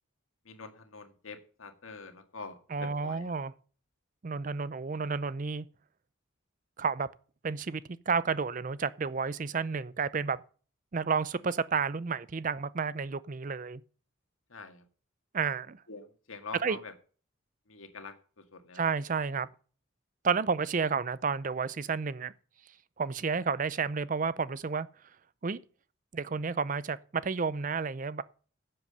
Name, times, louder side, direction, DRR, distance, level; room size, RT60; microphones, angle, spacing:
voice 1, 0.5-3.3 14.5-14.8 15.9-16.9 17.7-18.8, left 4 dB, 80° left, 1.9 m, -45 dB
voice 2, 2.7-3.5 4.2-5.7 6.8-7.1 7.4-10.4 10.9-13.8 15.3-15.8 16.6-16.8 18.7-19.5 20.2-22.3 23.0-24.9 25.4-25.6 26.1-28.2, right 5 dB, 40° right, 0.5 m, -31 dB
11.0 x 7.7 x 6.6 m
head